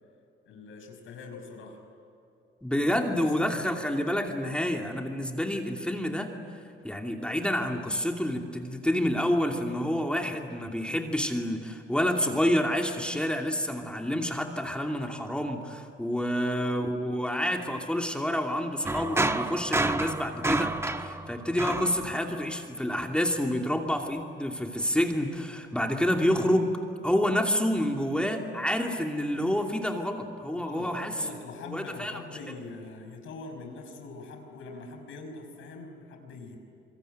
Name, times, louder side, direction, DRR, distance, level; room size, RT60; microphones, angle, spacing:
voice 1, 0.5-1.8 2.7-2.8 3.1-3.6 16.3-16.4 30.5-36.6, left 3 dB, 85° left, 4 dB, 5.7 m, -43 dB
voice 2, 2.6-6.3 6.8-26.7 27.0-31.2 31.6-32.2, equal, 5° left, 2 dB, 2.7 m, -28 dB
sound 1, 18.8-22.6, right 2 dB, 15° right, 1.2 m, -29 dB
27.0 x 23.0 x 9.2 m, 2.7 s
cardioid pair, 90°, 20 cm